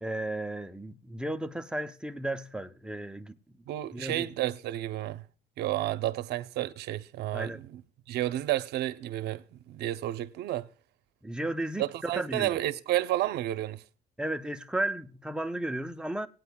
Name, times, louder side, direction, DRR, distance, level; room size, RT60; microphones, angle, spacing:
voice 1, 0.0-3.4 3.9-4.3 7.3-7.6 11.2-12.6 14.2-16.3, right 1 dB, 5° right, 0.7 m, -34 dB
voice 2, 3.7-5.2 5.6-7.8 8.1-10.7 11.8-13.8, right 14 dB, 75° right, 0.7 m, -31 dB
19.0 x 9.0 x 2.3 m
cardioid pair, 110°, 17 cm